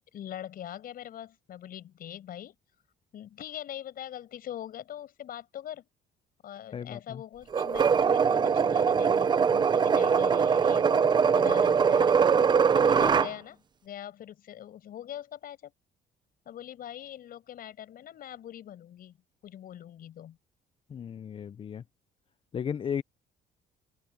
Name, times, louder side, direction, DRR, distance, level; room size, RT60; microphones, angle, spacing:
voice 1, 0.0-2.5 3.1-5.9 6.4-11.0 11.3-12.3 12.7-15.7 16.5-19.2 19.4-20.4, left 11 dB, 60° left, 6.3 m, -42 dB
voice 2, 6.7-7.2 20.9-21.8 22.5-23.0, left 8 dB, 30° left, 0.4 m, -35 dB
sound 1, 7.5-13.3, right 6 dB, 25° right, 0.5 m, -22 dB
open air
cardioid pair, 110°, 17 cm